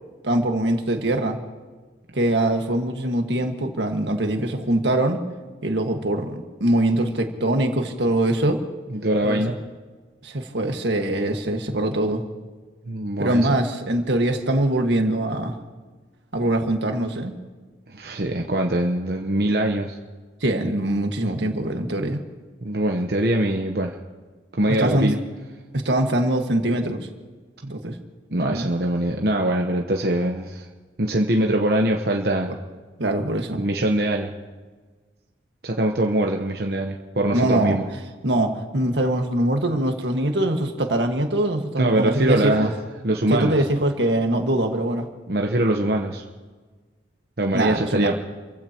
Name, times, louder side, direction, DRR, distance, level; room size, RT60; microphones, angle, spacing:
voice 1, 0.2-1.4 2.1-5.2 5.6-8.6 9.2-9.4 10.2-12.2 13.2-15.6 16.3-17.4 20.4-22.2 24.8-25.1 25.7-27.1 27.7-28.0 28.5-28.7 33.0-33.6 37.3-37.8 38.2-42.7 43.3-45.1 47.5-48.1, right 1 dB, 85° right, 4 dB, 1.7 m, -23 dB
voice 2, 8.9-9.6 12.9-13.5 17.9-20.0 22.6-24.0 24.6-25.2 27.6-27.7 28.3-30.7 31.0-32.6 33.5-34.3 35.6-37.9 41.8-42.7 43.0-43.5 45.3-46.2 47.4-48.1, right 1 dB, 60° right, 2 dB, 1.0 m, -23 dB
29.5 x 15.5 x 3.0 m, 1.4 s
head